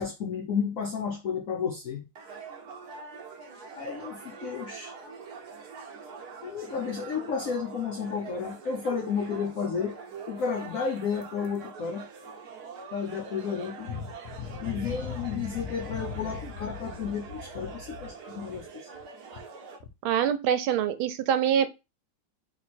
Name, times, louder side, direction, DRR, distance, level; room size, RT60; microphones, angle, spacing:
voice 1, 0.0-2.1 3.7-5.0 6.4-10.0 10.3-12.1 12.9-18.7, left 6 dB, 90° left, 0.7 m, -32 dB
sound 1, 2.2-19.8, right 5 dB, 60° right, 1.2 m, -44 dB
voice 2, 20.0-21.7, right 9 dB, 80° right, 1.5 m, -25 dB
3.4 x 3.0 x 4.2 m
omnidirectional pair, 2.3 m